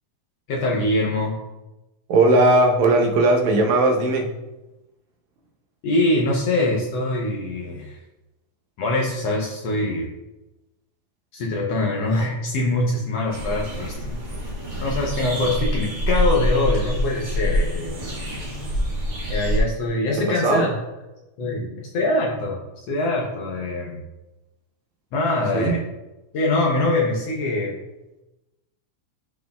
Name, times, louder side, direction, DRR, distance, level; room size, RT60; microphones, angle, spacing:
voice 1, 0.5-1.4 5.8-8.0 8.8-10.1 11.3-14.2 14.8-18.2 19.3-20.7 21.4-24.0 25.1-25.8 26.3-27.7, left 2 dB, 70° left, -1 dB, 1.6 m, -23 dB
voice 2, 2.1-4.3 20.2-20.7 25.5-25.8, right 2 dB, 75° right, 3 dB, 1.9 m, -18 dB
sound 1, 13.3-19.6, equal, 40° right, 1.7 m, -25 dB
12.5 x 4.6 x 2.2 m, 1.0 s
omnidirectional pair, 3.5 m